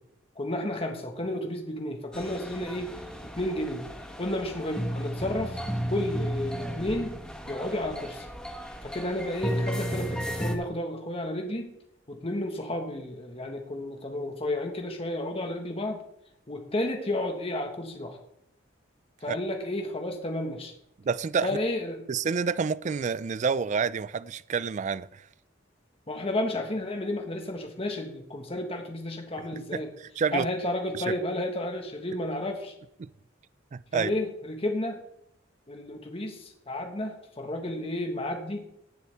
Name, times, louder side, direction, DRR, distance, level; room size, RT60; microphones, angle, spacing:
voice 1, 0.3-2.9 3.4-3.9 4.2-5.6 5.9-7.1 7.5-8.3 8.8-11.7 12.1-16.0 16.5-18.2 19.2-20.7 21.4-22.0 26.1-29.9 30.3-32.7 33.9-35.0 35.7-38.7, left 1 dB, 30° left, 3 dB, 1.4 m, -32 dB
sound 1, 2.1-10.6, equal, 5° left, 1.2 m, -34 dB
voice 2, 21.0-21.5 22.1-25.3 29.6-29.8 30.2-30.5 30.9-31.1 33.0-33.1 33.7-34.1, right 5 dB, 40° right, 18 dB, 0.3 m, -28 dB
19.0 x 7.0 x 3.5 m, 0.75 s
head